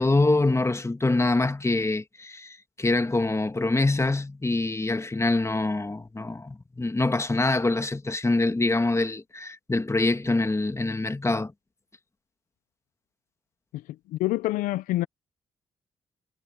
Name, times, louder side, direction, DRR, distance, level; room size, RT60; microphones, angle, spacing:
voice 1, 0.0-11.5, left 2 dB, 20° left, 2.0 m, -25 dB
voice 2, 14.1-15.1, left 17 dB, 80° left, 0.8 m, -26 dB
hypercardioid pair, 45°, 14 cm